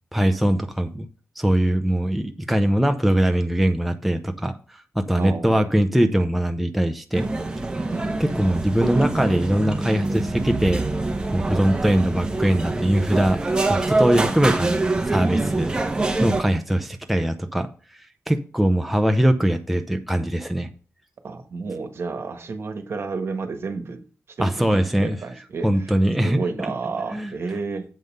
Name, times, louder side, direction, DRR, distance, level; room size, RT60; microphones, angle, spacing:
voice 1, 0.1-1.1 1.4-7.3 8.2-10.8 11.3-13.4 13.7-15.7 16.2-17.7 18.3-20.7 24.4-25.2 25.6-26.4 27.1-27.3, right 1 dB, ahead, 6 dB, 0.6 m, -21 dB
voice 2, 5.1-5.7 7.9-8.4 21.2-24.0 24.4-25.9 26.2-27.8, right 4 dB, 55° right, 7 dB, 1.4 m, -31 dB
sound 1, 7.1-16.4, right 2 dB, 15° right, 1.0 m, -25 dB
7.9 x 5.5 x 5.4 m, 0.39 s
wide cardioid pair, 125°, 5 cm